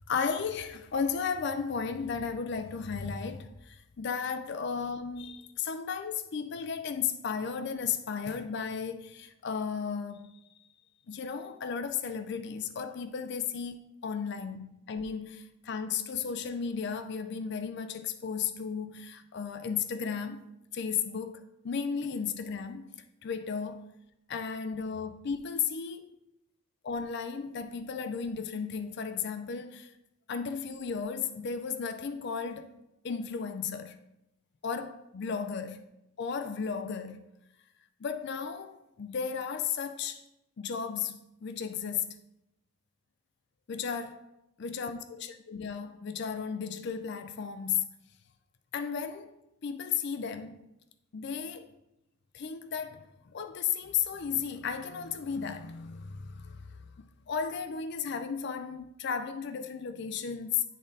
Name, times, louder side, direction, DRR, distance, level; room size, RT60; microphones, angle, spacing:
voice 1, 0.1-10.3 11.1-20.4 20.7-22.9 23.2-23.9 24.3-26.2 26.8-29.9 30.3-32.7 33.0-34.0 34.6-35.8 36.2-37.3 38.0-40.2 40.6-42.2 43.7-44.3 44.6-47.9 48.7-49.3 49.6-50.6 51.1-51.7 52.3-56.9 57.3-60.6, left 6 dB, 50° left, 0.4 m, -34 dB
10.0 x 3.7 x 3.9 m
head